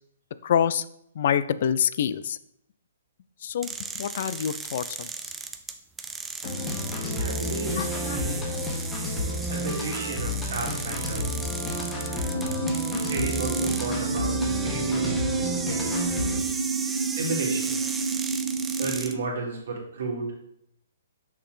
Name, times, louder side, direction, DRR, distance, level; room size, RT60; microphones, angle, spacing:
voice 1, 0.4-0.8 1.2-2.4 3.4-3.7 4.0-5.1 6.4-6.6 7.8-8.2, left 8 dB, 50° left, 15 dB, 0.3 m, -26 dB
sound 1, 3.6-19.1, right 4 dB, 10° right, 0.4 m, -36 dB
sound 2, 6.4-16.4, left 1 dB, 15° left, 1.5 m, -31 dB
voice 2, 7.1-8.5 9.5-11.3 13.1-15.9 17.1-17.8 18.8-20.3, right 3 dB, 65° right, -2 dB, 2.2 m, -33 dB
sound 3, 12.3-19.2, right 5 dB, 80° right, 1.0 m, -29 dB
6.3 x 5.7 x 3.4 m, 0.73 s
figure-of-eight pair, 125°, 0 cm